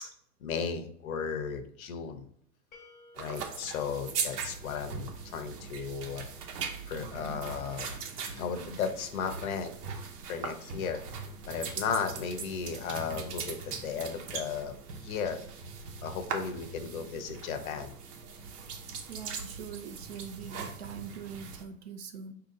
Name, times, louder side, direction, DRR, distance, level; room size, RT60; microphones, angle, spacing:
voice 1, 0.4-2.3 3.2-6.3 6.9-7.9 8.4-9.7 10.3-11.0 11.5-14.8 15.0-15.4 16.0-17.9, left 6 dB, 65° left, 8 dB, 0.8 m, -35 dB
sound 1, 2.7-5.6, left 3 dB, 15° left, 0.6 m, -59 dB
sound 2, 3.2-21.6, right 5 dB, 80° right, 1.0 m, -40 dB
voice 2, 19.1-22.3, right 7 dB, 45° right, 8 dB, 0.5 m, -43 dB
4.5 x 2.9 x 3.7 m, 0.64 s
hypercardioid pair, 145°, 46 cm